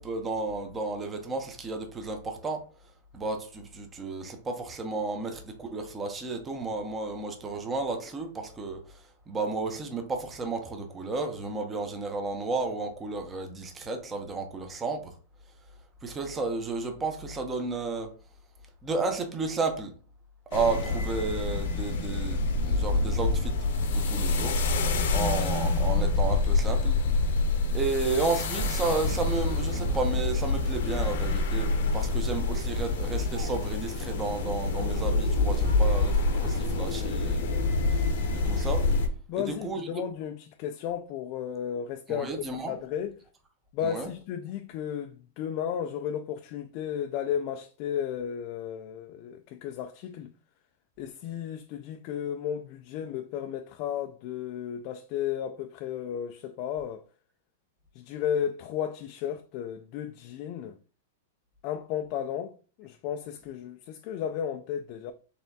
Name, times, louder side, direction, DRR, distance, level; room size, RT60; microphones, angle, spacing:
voice 1, 0.0-2.6 3.1-9.0 9.3-15.1 16.0-18.1 18.8-19.9 20.5-23.5 23.9-24.6 25.1-27.0 27.7-37.5 37.9-38.8 39.3-39.8 42.1-42.7 43.8-44.1, right 3 dB, 20° right, 0.7 m, -32 dB
sound 1, 20.5-39.1, left 3 dB, 70° left, 0.8 m, -27 dB
sound 2, 28.3-36.6, right 3 dB, 85° right, 1.2 m, -39 dB
voice 2, 39.3-42.3 42.7-43.1 43.7-50.3 51.0-57.1 57.9-60.8 61.6-65.1, left 9 dB, 45° left, 0.3 m, -34 dB
4.3 x 3.3 x 2.7 m
hypercardioid pair, 135°, 0 cm